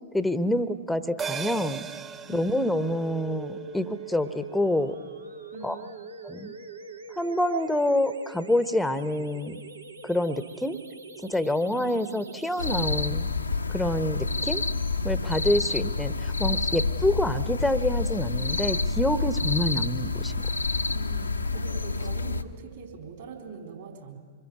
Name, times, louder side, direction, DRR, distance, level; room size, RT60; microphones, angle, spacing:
voice 1, 0.1-1.9 2.3-5.0 5.6-5.8 6.2-6.5 7.2-9.6 10.0-10.8 11.2-13.3 13.7-14.6 15.0-20.3, left 1 dB, 5° left, 13 dB, 1.0 m, -27 dB
sound 1, 1.2-5.9 6.2-6.3, right 6 dB, 25° right, 1.3 m, -40 dB
voice 2, 2.3-2.7 5.5-5.9 11.6-12.3 20.9-24.2, right 5 dB, 55° right, 4 dB, 4.3 m, -43 dB
sound 2, 2.8-12.8, right 3 dB, 75° right, 1.5 m, -42 dB
sound 3, 12.6-22.4, left 3 dB, 80° left, 1.1 m, -28 dB
25.5 x 21.5 x 9.4 m, 1.5 s
figure-of-eight pair, 100°, 0 cm